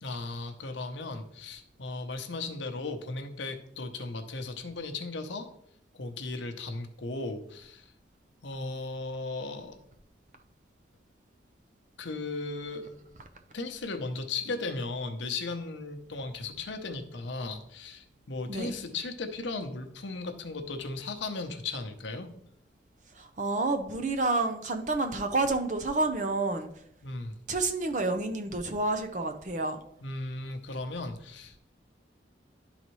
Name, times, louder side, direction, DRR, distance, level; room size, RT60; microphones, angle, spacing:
voice 1, 0.0-5.5 5.9-7.9 8.4-9.8 12.0-12.9 13.5-22.3 27.0-27.4 30.0-31.6, left 3 dB, 75° left, 6 dB, 0.8 m, -36 dB
voice 2, 18.5-18.8 23.1-26.7 27.5-29.8, right 2 dB, 40° right, 6 dB, 0.6 m, -29 dB
11.0 x 4.0 x 3.1 m, 0.70 s
head